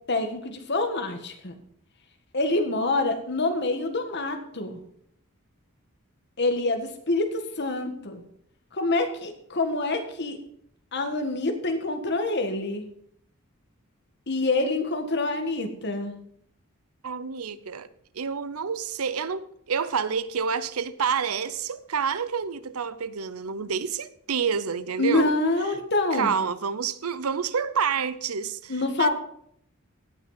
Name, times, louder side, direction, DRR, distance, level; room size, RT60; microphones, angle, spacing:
voice 1, 0.1-1.5 2.3-4.8 6.4-8.2 8.7-10.4 10.9-12.9 14.3-16.1 25.0-26.3 28.7-29.1, left 2 dB, 50° left, 1.6 m, -26 dB
voice 2, 17.0-17.9 18.1-25.3 26.1-29.1, right 6 dB, 80° right, 0.7 m, -28 dB
17.0 x 6.1 x 5.7 m
head